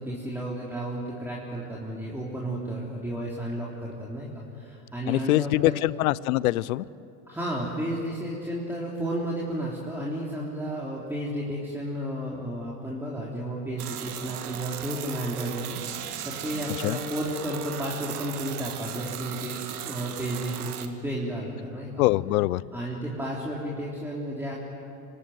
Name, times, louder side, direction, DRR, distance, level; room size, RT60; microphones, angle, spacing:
voice 1, 0.0-5.8 7.3-22.0 22.7-24.5, right 1 dB, 5° right, -4 dB, 3.5 m, -32 dB
voice 2, 5.1-6.8 16.8-17.0 22.0-22.6, left 18 dB, 75° left, 22 dB, 0.7 m, -23 dB
sound 1, 13.8-20.9, right 9 dB, 85° right, 1.7 m, -37 dB
26.0 x 18.0 x 9.4 m, 2.9 s
hypercardioid pair, 95°, 44 cm